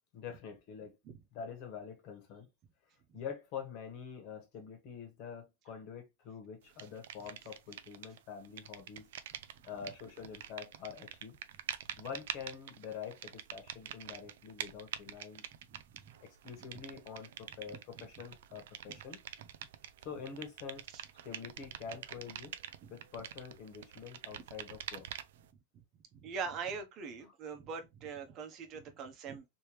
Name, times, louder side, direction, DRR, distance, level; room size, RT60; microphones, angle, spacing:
voice 1, 0.1-1.0 1.3-2.5 3.1-9.1 9.6-11.4 12.0-15.4 16.2-19.2 20.0-20.8 21.2-22.6 22.9-25.1, left 6 dB, 45° left, 1.4 m, -46 dB
sound 1, 6.8-8.2 8.4-25.5, right 10 dB, 75° right, 0.4 m, -46 dB
voice 2, 15.7-16.0 18.8-19.0 19.4-19.5 20.9-21.0 26.1-29.4, right 5 dB, 35° right, 1.0 m, -42 dB
3.3 x 3.0 x 3.1 m
supercardioid pair, 140°, 0 cm